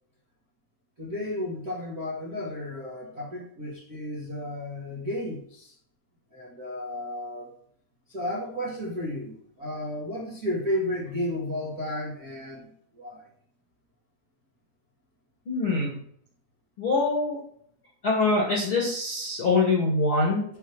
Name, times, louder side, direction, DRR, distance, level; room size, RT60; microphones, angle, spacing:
voice 1, 1.0-5.7 6.3-7.5 8.1-12.7 13.0-13.2, left 1 dB, 75° right, -5 dB, 0.8 m, -33 dB
voice 2, 15.4-15.9 16.8-17.4 18.0-20.4, left 3 dB, 50° left, -2 dB, 1.6 m, -24 dB
9.1 x 4.8 x 7.3 m, 0.62 s
omnidirectional pair, 5.9 m